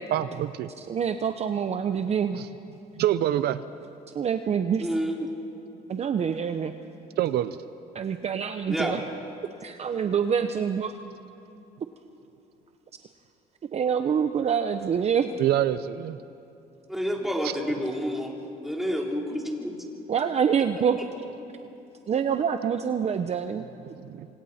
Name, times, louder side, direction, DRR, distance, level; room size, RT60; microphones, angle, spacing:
voice 1, 0.1-0.7 2.4-2.5 3.0-3.6 7.2-7.6 15.4-16.2 24.0-24.3, right 12 dB, 70° right, 13 dB, 0.6 m, -25 dB
voice 2, 0.8-2.4 4.1-4.9 5.9-6.7 7.9-9.0 9.6-11.0 13.7-15.3 20.1-21.0 22.1-23.9, right 7 dB, 40° right, 8 dB, 0.8 m, -26 dB
voice 3, 4.8-5.1 8.7-9.0 16.9-18.3 18.6-19.8, equal, ahead, -2 dB, 3.8 m, -29 dB
28.0 x 26.5 x 4.3 m, 2.8 s
cardioid pair, 110°, 17 cm